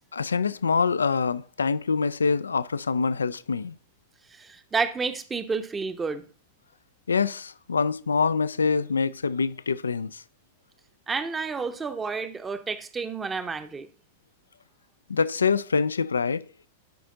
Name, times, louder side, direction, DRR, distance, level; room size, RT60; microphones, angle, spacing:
voice 1, 0.1-3.7 7.1-10.2 15.1-16.4, left 5 dB, 75° left, 0.4 m, -25 dB
voice 2, 4.3-6.2 11.1-13.9, right 4 dB, 15° right, 0.8 m, -30 dB
11.5 x 5.1 x 3.8 m
figure-of-eight pair, 95°, 0 cm